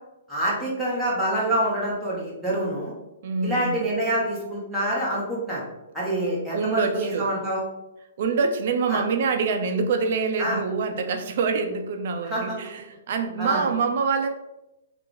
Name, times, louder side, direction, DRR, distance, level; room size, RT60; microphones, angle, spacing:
voice 1, 0.3-2.9 3.4-5.6 5.9-7.6 8.9-9.0 10.4-10.6 12.2-12.5 13.4-13.7, right 1 dB, ahead, -9 dB, 1.4 m, -26 dB
voice 2, 3.2-3.9 6.5-7.3 8.2-14.3, right 5 dB, 55° right, 6 dB, 0.5 m, -25 dB
3.2 x 2.5 x 3.9 m, 0.93 s
hypercardioid pair, 150°, 0 cm